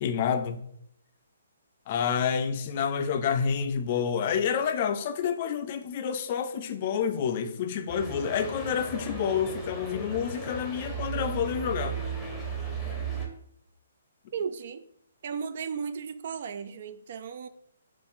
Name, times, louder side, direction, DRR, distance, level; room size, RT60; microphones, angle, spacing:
voice 1, 0.0-0.6 1.9-12.0, left 7 dB, 40° left, 0.4 m, -28 dB
sound 1, 7.9-13.3, right 4 dB, 10° left, 0.8 m, -35 dB
voice 2, 14.3-14.8 15.2-17.5, right 6 dB, 55° right, 0.3 m, -35 dB
4.3 x 2.4 x 3.6 m
hypercardioid pair, 150°, 0 cm